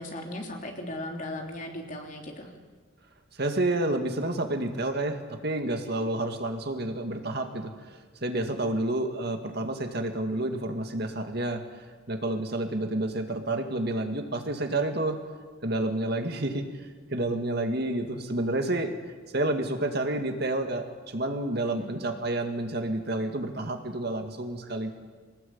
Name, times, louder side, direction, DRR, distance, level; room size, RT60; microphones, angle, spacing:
voice 1, 0.0-2.5 21.8-22.0, left 1 dB, 40° left, 2 dB, 3.3 m, -37 dB
voice 2, 3.3-15.2 15.6-18.9 19.3-24.9, right 2 dB, 50° right, 5 dB, 2.1 m, -30 dB
24.5 x 19.0 x 8.8 m, 1.4 s
head